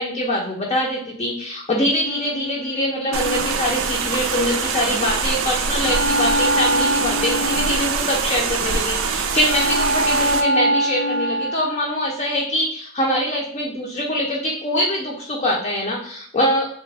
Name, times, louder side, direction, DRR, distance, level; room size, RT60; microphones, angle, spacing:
voice 1, 0.0-16.7, equal, 30° left, -3 dB, 0.5 m, -23 dB
sound 1, 2.0-4.5 5.8-8.7 9.4-12.0, equal, 85° left, 0.6 m, -24 dB
sound 2, 3.1-10.4, right 5 dB, 70° right, 0.4 m, -24 dB
3.2 x 2.1 x 3.2 m, 0.64 s
head